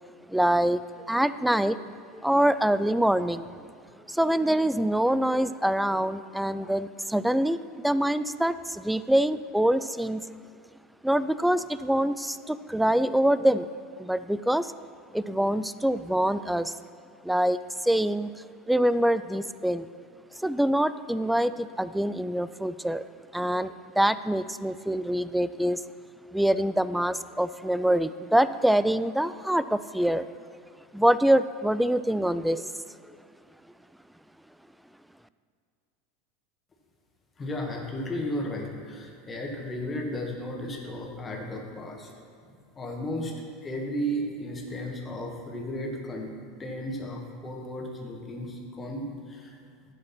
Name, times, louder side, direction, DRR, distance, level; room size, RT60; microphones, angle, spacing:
voice 1, 0.3-0.8 1.1-1.8 2.1-3.5 4.1-7.6 7.8-10.2 11.0-13.7 14.0-14.7 15.1-16.7 17.2-18.3 18.7-19.9 20.4-23.0 23.3-25.8 26.3-30.3 30.9-32.7, right 1 dB, 5° right, 15 dB, 0.3 m, -25 dB
voice 2, 37.4-42.1 42.5-43.3 43.6-46.3 46.6-49.6, equal, 20° left, 0 dB, 1.7 m, -34 dB
11.5 x 5.1 x 5.9 m, 2.4 s
figure-of-eight pair, 80°, 0 cm